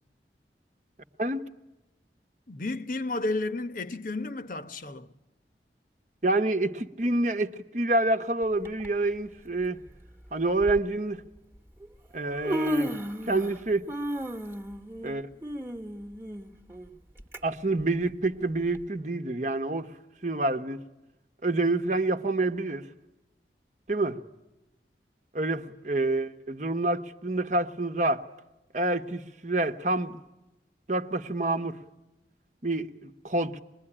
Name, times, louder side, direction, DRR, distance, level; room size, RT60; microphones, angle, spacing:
voice 1, 2.5-5.1, left 2 dB, 50° left, 1.0 m, -32 dB
voice 2, 6.2-9.8 10.3-11.2 12.1-12.9 13.3-13.9 15.0-15.3 17.4-19.9 20.2-20.8 21.4-22.9 23.9-24.2 25.3-28.2 28.7-30.2 30.9-31.8 32.6-33.6, right 2 dB, 45° right, 1.1 m, -27 dB
Human voice, 8.6-8.9 9.9-10.0 10.6-10.8 11.8-11.9 12.2-13.6 13.9-17.4 17.8-17.9 18.7-18.8, equal, 15° right, 1.3 m, -33 dB
25.5 x 21.0 x 9.9 m
head